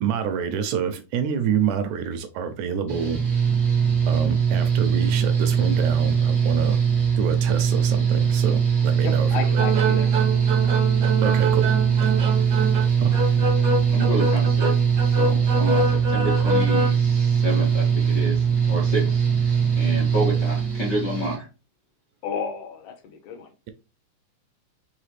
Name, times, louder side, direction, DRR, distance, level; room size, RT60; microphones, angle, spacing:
voice 1, 0.0-3.2 4.1-6.8 7.2-9.7 11.2-11.7 12.0-12.3 13.0-13.2, right 7 dB, 80° right, 1.8 m, -27 dB
Mechanical fan, 2.9-21.4, right 7 dB, 20° right, 0.5 m, -21 dB
voice 2, 9.0-10.1 22.2-23.5, left 6 dB, 75° left, 1.9 m, -32 dB
sound 1, 9.6-16.9, right 1 dB, 60° right, 1.0 m, -26 dB
voice 3, 13.9-14.8 15.0-21.5, right 1 dB, 55° left, 1.2 m, -30 dB
4.9 x 3.4 x 3.1 m
omnidirectional pair, 3.6 m